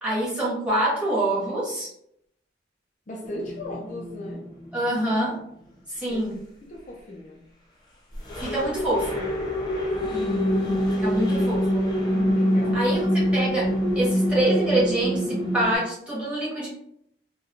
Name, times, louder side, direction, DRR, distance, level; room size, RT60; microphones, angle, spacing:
voice 1, 0.0-1.9 4.7-5.4 5.9-6.4 8.3-9.3 11.0-11.8 12.7-16.7, right 1 dB, 5° right, -8 dB, 1.3 m, -26 dB
voice 2, 3.1-4.5 6.1-6.2 6.6-7.5 11.1-11.3 12.3-13.0, left 1 dB, 40° left, -2 dB, 0.5 m, -37 dB
sound 1, 3.2-5.1 8.1-15.7, equal, 25° left, 0.8 m, -25 dB
4.2 x 2.3 x 2.5 m, 0.74 s
head